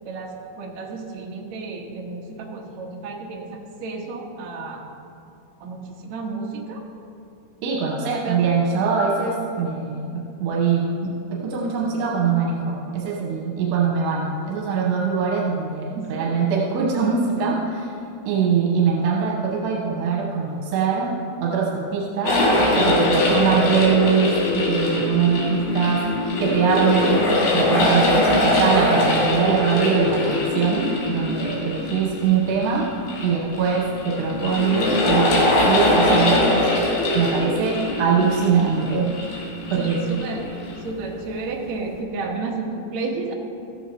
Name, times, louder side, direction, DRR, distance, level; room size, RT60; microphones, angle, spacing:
voice 1, 0.0-4.8 5.6-6.8 8.1-8.4 15.9-16.4 28.1-28.6 36.3-36.5 37.8-38.0 39.7-40.4 40.8-43.3, right 3 dB, 60° right, -1 dB, 2.0 m, -32 dB
voice 2, 7.6-17.9 18.3-21.1 21.4-22.4 22.8-26.0 26.4-27.3 27.5-32.9 33.2-36.7 37.1-39.1 39.7-40.2, right 6 dB, 85° right, -2 dB, 3.1 m, -22 dB
sound 1, 22.2-40.9, left 1 dB, 85° left, 4.3 m, -22 dB
14.5 x 14.0 x 2.9 m, 2.6 s
omnidirectional pair, 4.7 m